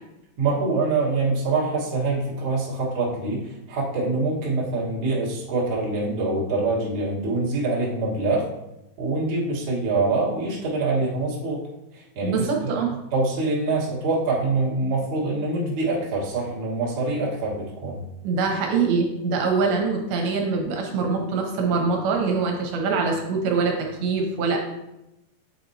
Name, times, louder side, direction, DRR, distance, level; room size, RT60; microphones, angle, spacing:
voice 1, 0.4-8.4 9.0-11.6 11.9-12.7 13.1-18.0, right 3 dB, 55° right, -6 dB, 1.4 m, -25 dB
voice 2, 12.2-12.9 18.2-24.6, right 4 dB, 75° right, 1 dB, 2.6 m, -24 dB
8.3 x 4.3 x 2.7 m, 0.90 s
omnidirectional pair, 4.6 m